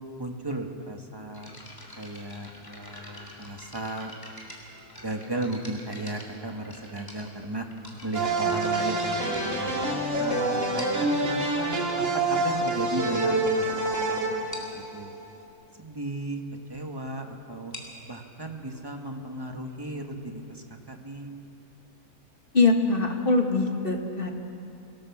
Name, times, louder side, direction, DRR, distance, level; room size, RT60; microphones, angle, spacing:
voice 1, 0.2-1.5 2.0-4.1 5.0-7.7 8.0-9.7 10.2-14.2 14.7-15.1 15.8-16.4 16.7-17.7 18.1-21.3, right 2 dB, 15° right, 3 dB, 1.6 m, -35 dB
sound 1, 1.3-10.2 10.8-11.2 12.0-12.1 12.7-12.8 13.1-13.3 13.6-13.7 14.0-14.1 14.5-14.8 17.5-21.0, left 1 dB, 15° left, 3.4 m, -46 dB
sound 2, 8.1-15.2, right 2 dB, 50° right, 2.8 m, -27 dB
voice 2, 22.5-24.3, left 3 dB, 35° left, 3 dB, 1.9 m, -23 dB
26.0 x 17.5 x 7.3 m, 2.7 s
omnidirectional pair, 1.6 m